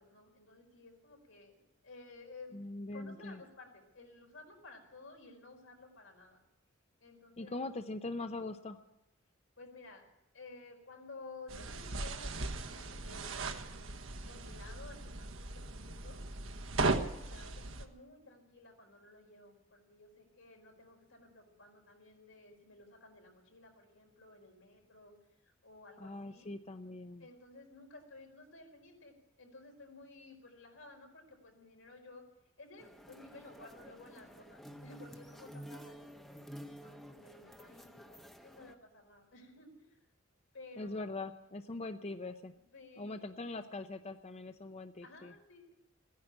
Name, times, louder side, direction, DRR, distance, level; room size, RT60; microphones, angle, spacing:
voice 1, 0.0-2.5 2.9-6.4 7.0-7.6 9.6-10.0 10.3-13.7 14.3-16.2 16.8-25.1 25.4-26.5 27.2-32.2 32.6-36.2 36.7-40.0 40.5-41.2 42.5-43.5 45.0-45.7, left 3 dB, 85° left, 2 dB, 4.9 m, -55 dB
voice 2, 2.5-3.4 7.4-8.8 26.0-27.3 40.8-42.5 43.0-45.3, left 2 dB, 35° left, 9 dB, 0.6 m, -42 dB
sound 1, 11.5-17.9, right 3 dB, 85° right, 1.3 m, -38 dB
sound 2, 32.8-38.7, equal, ahead, 0.8 m, -51 dB
15.5 x 10.5 x 8.7 m, 0.89 s
head